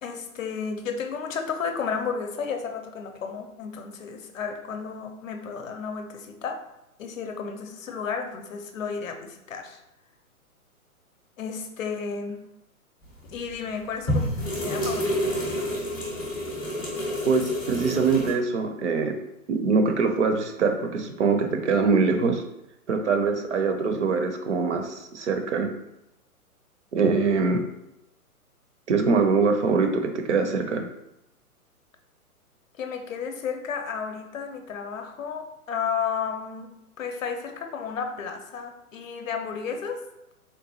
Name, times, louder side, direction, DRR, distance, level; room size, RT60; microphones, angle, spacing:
voice 1, 0.0-6.6 7.0-9.8 11.4-12.4 13.3-14.3 14.6-15.4 16.5-16.6 32.8-36.7 37.0-40.0, left 6 dB, 60° left, 4 dB, 0.6 m, -32 dB
sound 1, 13.3-13.5 14.1-18.3, equal, 15° left, 0.4 m, -28 dB
voice 2, 17.3-19.1 19.5-22.4 22.9-25.7 26.9-27.6 28.9-30.8, right 4 dB, 55° right, 5 dB, 0.5 m, -23 dB
3.8 x 2.2 x 2.7 m, 0.88 s
figure-of-eight pair, 120°, 45 cm